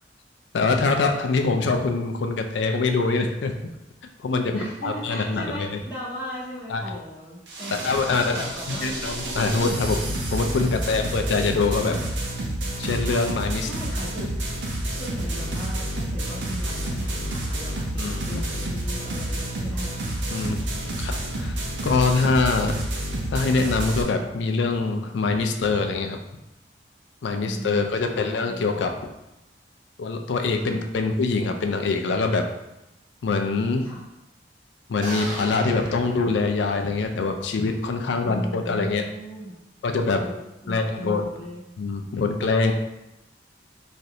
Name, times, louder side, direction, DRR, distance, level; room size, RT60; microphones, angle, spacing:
voice 1, 0.5-3.5 4.2-5.7 6.7-6.8 7.8-8.3 8.7-12.0 12.8-13.7 18.0-18.4 20.3-20.6 21.0-22.7 23.3-26.2 27.2-28.9 30.0-32.4 33.2-33.9 34.9-39.0 39.8-40.2 40.7-41.2 41.8-42.7, left 3 dB, 85° left, 5 dB, 0.4 m, -24 dB
voice 2, 4.5-7.8 8.0-9.0 10.6-11.0 13.6-14.5 15.0-20.9 27.4-28.7 30.5-30.8 33.8-34.0 38.2-39.5 40.0-40.4 40.6-41.6, equal, 10° right, -10 dB, 1.2 m, -37 dB
sound 1, 7.5-24.0, right 1 dB, 80° right, 0.6 m, -29 dB
sound 2, 35.0-37.0, right 1 dB, 50° right, 0.8 m, -36 dB
3.1 x 2.5 x 2.7 m, 0.91 s
head